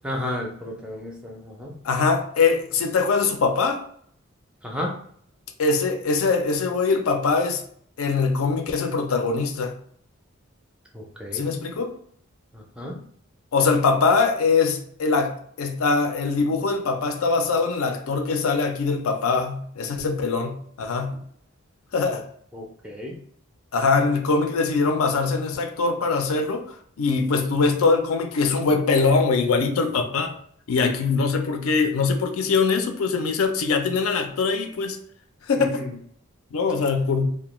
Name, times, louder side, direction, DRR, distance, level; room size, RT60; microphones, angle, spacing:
voice 1, 0.0-1.7 4.6-4.9 10.9-11.5 12.5-13.0 22.5-23.2 35.6-35.9, left 1 dB, 5° right, 0.4 m, -32 dB
voice 2, 1.8-3.8 5.6-7.6 8.0-9.8 11.3-12.0 13.5-21.2 21.9-22.2 23.7-30.4 30.7-35.0 35.4-35.8 36.5-37.3, left 4 dB, 80° left, 0.4 m, -22 dB
2.2 x 2.1 x 3.0 m
head